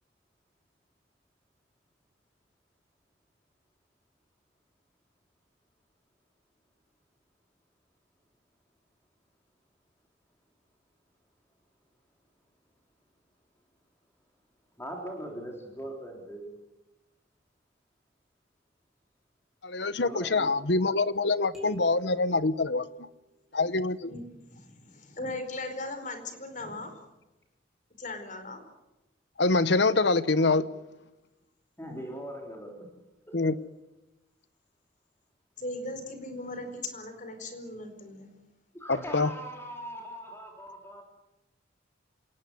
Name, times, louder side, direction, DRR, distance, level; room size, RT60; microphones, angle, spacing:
voice 1, 14.8-16.5 20.0-20.5 31.8-32.9 33.3-33.5 38.7-41.0, equal, 15° left, 1 dB, 3.7 m, -40 dB
voice 2, 19.6-22.9 23.5-24.1 29.4-30.7 33.3-33.6 38.9-39.3, left 3 dB, 65° left, 15 dB, 1.0 m, -25 dB
sound 1, 21.5-23.4, right 1 dB, ahead, 6.7 m, -48 dB
voice 3, 24.1-26.9 28.0-28.6 35.6-38.3, left 2 dB, 40° left, 8 dB, 4.7 m, -38 dB
27.0 x 18.5 x 9.5 m, 1.0 s
head